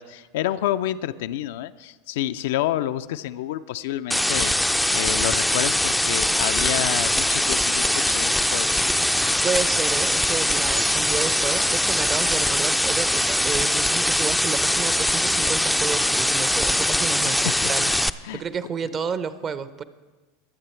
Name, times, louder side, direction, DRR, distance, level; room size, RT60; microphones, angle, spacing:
voice 1, 0.0-4.5 4.9-8.7 17.3-18.0 18.2-18.4, left 13 dB, 65° left, 11 dB, 0.4 m, -29 dB
sound 1, 4.1-18.1, left 1 dB, 5° left, 0.4 m, -22 dB
voice 2, 9.4-19.8, right 6 dB, 35° right, 14 dB, 0.7 m, -31 dB
22.0 x 8.1 x 4.4 m, 1.3 s
hypercardioid pair, 85°, 0 cm